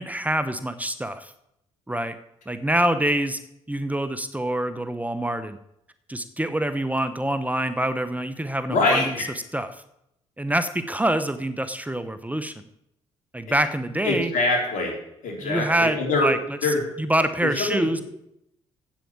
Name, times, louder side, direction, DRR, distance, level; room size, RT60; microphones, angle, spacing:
voice 1, 0.0-1.3 1.9-2.2 2.5-3.4 3.7-5.6 6.1-9.1 9.5-9.8 10.4-12.5 13.3-14.3 15.4-18.0, right 1 dB, 10° right, 11 dB, 0.9 m, -26 dB
voice 2, 8.7-9.2 14.0-14.9 15.2-16.3 16.6-16.9 17.4-18.0, left 2 dB, 65° left, 1 dB, 3.8 m, -24 dB
8.4 x 7.3 x 8.8 m, 0.79 s
hypercardioid pair, 55°, 14 cm